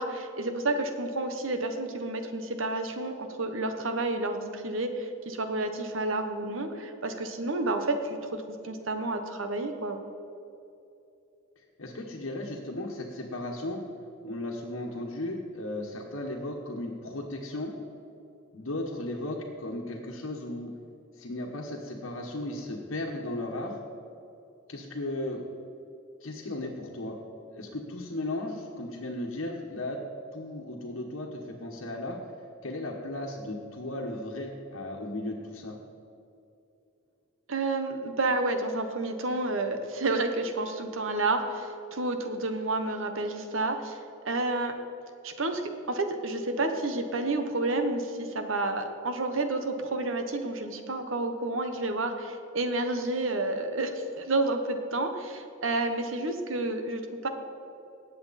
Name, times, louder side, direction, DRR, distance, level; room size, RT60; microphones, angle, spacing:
voice 1, 0.0-10.0 37.5-44.0 44.2-44.8 45.2-45.6 45.9-57.3, right 2 dB, 75° right, 6 dB, 1.2 m, -30 dB
voice 2, 11.8-13.8 14.2-17.7 18.5-20.7 21.1-23.8 24.7-25.5 26.2-27.2 27.5-30.0 30.3-32.2 32.6-35.8, left 1 dB, 90° left, -4 dB, 1.4 m, -35 dB
18.5 x 7.8 x 4.2 m, 2.7 s
head